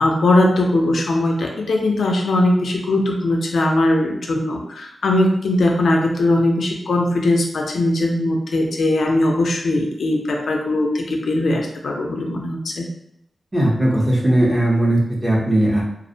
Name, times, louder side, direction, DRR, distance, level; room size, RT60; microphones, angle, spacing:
voice 1, 0.0-12.9, left 1 dB, 85° left, 1 dB, 0.4 m, -19 dB
voice 2, 13.5-15.8, right 1 dB, 15° right, -5 dB, 0.7 m, -18 dB
2.4 x 2.0 x 2.6 m, 0.75 s
wide cardioid pair, 140°, 0 cm